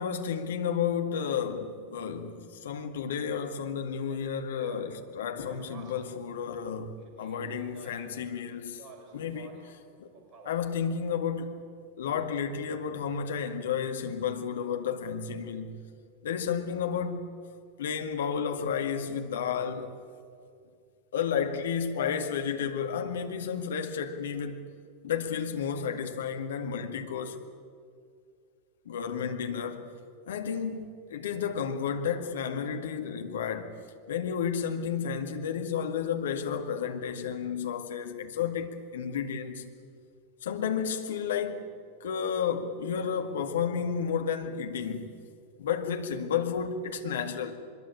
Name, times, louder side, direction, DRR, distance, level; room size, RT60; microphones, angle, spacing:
voice 1, 0.0-8.8 9.1-10.1 10.4-11.6 12.0-15.8 16.2-17.3 17.8-20.0 21.1-24.6 25.0-27.4 28.9-29.9 30.3-33.7 34.1-39.7 40.4-41.7 42.0-45.1 45.6-47.6, left 7 dB, 60° left, 2.0 m, -32 dB
Speech, 4.0-6.2 7.0-8.2 8.6-9.8 10.1-10.8, right 4 dB, 25° right, 5.7 m, -50 dB
24.0 x 22.0 x 8.7 m
figure-of-eight pair, 90°, 0 cm